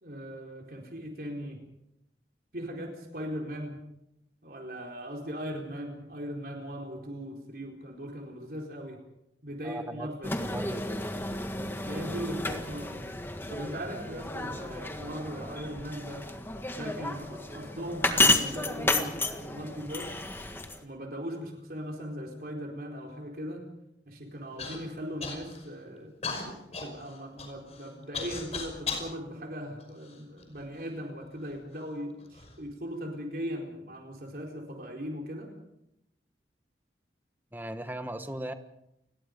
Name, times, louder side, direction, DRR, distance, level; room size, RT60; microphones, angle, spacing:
voice 1, 0.0-1.6 2.5-3.8 4.4-9.0 9.4-10.4 11.8-13.0 13.5-16.2 16.7-20.2 20.8-23.6 24.1-26.1 26.5-35.5, equal, 55° right, 1 dB, 4.3 m, -39 dB
voice 2, 9.6-11.1 37.5-38.5, right 1 dB, 10° right, 8 dB, 1.4 m, -38 dB
sound 1, 10.2-20.8, left 2 dB, 10° left, 1.7 m, -31 dB
Human voice / Cough, 24.6-24.8 25.2-25.7 26.2-29.1 29.8-30.6 31.4-31.5 32.2-32.5, left 4 dB, 35° left, 5.6 m, -37 dB
30.0 x 21.0 x 5.2 m, 0.84 s
head